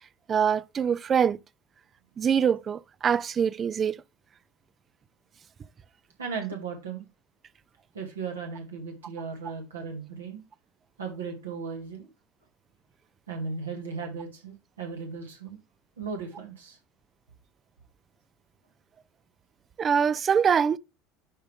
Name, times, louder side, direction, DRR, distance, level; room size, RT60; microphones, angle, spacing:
voice 1, 0.3-1.4 2.2-4.0 19.8-20.8, right 7 dB, 35° right, 0.5 m, -24 dB
voice 2, 6.2-7.1 7.9-10.4 11.0-12.1 13.3-15.6 16.0-16.8, right 5 dB, 90° right, 1.9 m, -36 dB
11.0 x 3.7 x 3.5 m
hypercardioid pair, 75°, 0 cm